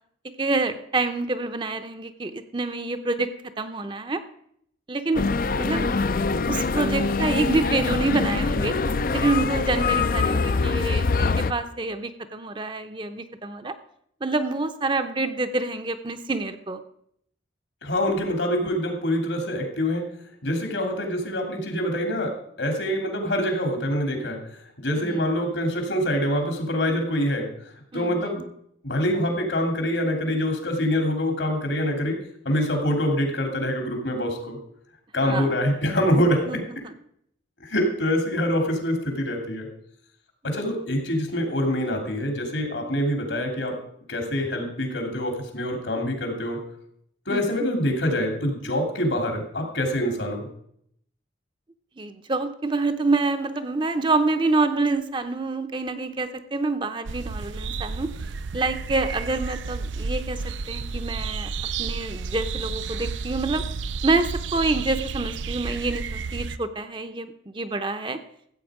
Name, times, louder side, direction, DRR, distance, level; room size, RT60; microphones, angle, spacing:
voice 1, 0.4-4.2 4.9-5.3 5.6-5.9 6.5-8.8 9.1-13.7 14.2-16.8 25.0-25.2 27.9-28.5 35.2-35.6 36.4-36.9 47.3-47.7 52.0-58.1 58.5-61.5 61.8-63.7 64.0-68.2, right 3 dB, 25° right, 9 dB, 0.6 m, -27 dB
sound 1, 5.1-11.5, left 4 dB, 50° left, 0.4 m, -24 dB
voice 2, 17.8-20.1 20.4-24.4 24.8-27.5 27.9-28.4 28.8-32.2 32.4-34.6 35.1-36.6 37.6-39.7 40.4-43.7 44.1-46.6 47.3-50.5, equal, 80° left, 3 dB, 2.8 m, -25 dB
sound 2, 57.1-66.6, right 4 dB, 85° right, 0.5 m, -31 dB
14.0 x 8.3 x 4.9 m, 0.70 s
head